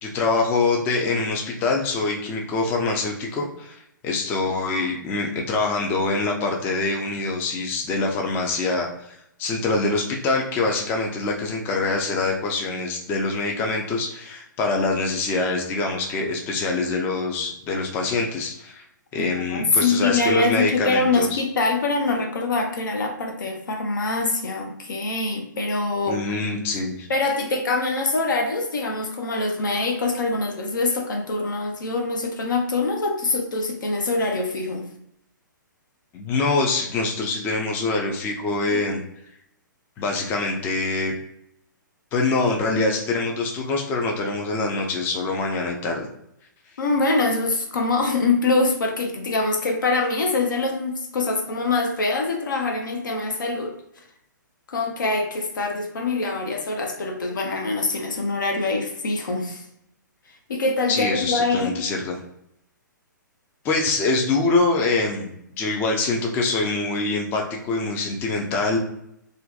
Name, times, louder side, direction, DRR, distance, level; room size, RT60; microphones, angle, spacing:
voice 1, 0.0-18.8 19.1-21.4 26.1-27.1 36.1-39.0 40.0-41.1 42.1-46.1 60.9-62.2 63.6-65.3 65.6-68.8, left 3 dB, 20° left, 1 dB, 0.3 m, -24 dB
voice 2, 19.2-26.2 27.1-34.9 38.7-38.8 46.8-53.8 54.7-59.6 60.5-61.7, left 3 dB, 70° left, 3 dB, 0.6 m, -24 dB
2.5 x 2.2 x 2.3 m, 0.76 s
figure-of-eight pair, 125°, 11 cm